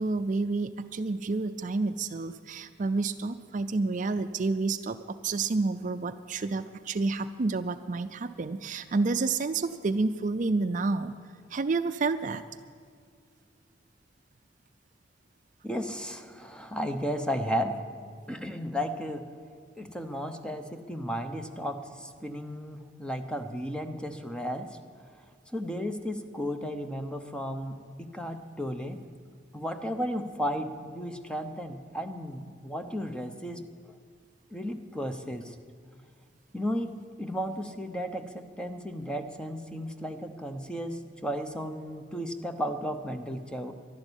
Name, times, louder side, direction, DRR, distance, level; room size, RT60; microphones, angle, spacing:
voice 1, 0.0-11.1 11.5-12.4, right 3 dB, 45° right, 11 dB, 0.4 m, -29 dB
voice 2, 15.6-17.8 18.3-19.3 19.8-24.8 25.5-29.0 29.5-34.0 34.5-35.5 36.5-43.7, equal, 5° left, 6 dB, 0.8 m, -34 dB
12.0 x 11.5 x 9.8 m, 2.1 s
head